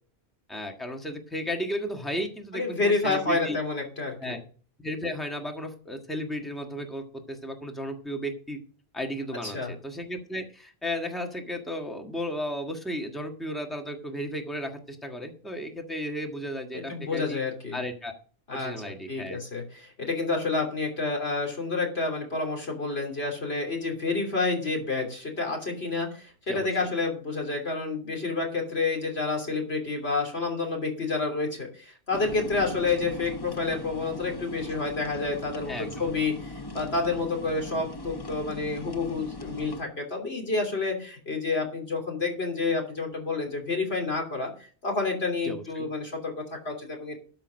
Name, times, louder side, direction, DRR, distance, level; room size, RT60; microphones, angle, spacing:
voice 1, 0.5-3.6 4.2-4.4 4.8-8.6 8.9-17.4 17.7-18.1 18.5-19.4 26.5-26.7 35.7-36.1 45.4-45.9, equal, ahead, 3 dB, 1.5 m, -34 dB
voice 2, 2.5-4.4 9.4-9.7 16.7-17.8 18.5-18.7 19.1-44.5 44.8-47.2, left 3 dB, 70° left, 2 dB, 3.4 m, -29 dB
sound 1, 32.1-39.8, left 2 dB, 25° left, 0.7 m, -39 dB
12.5 x 5.6 x 6.4 m, 0.41 s
omnidirectional pair, 1.1 m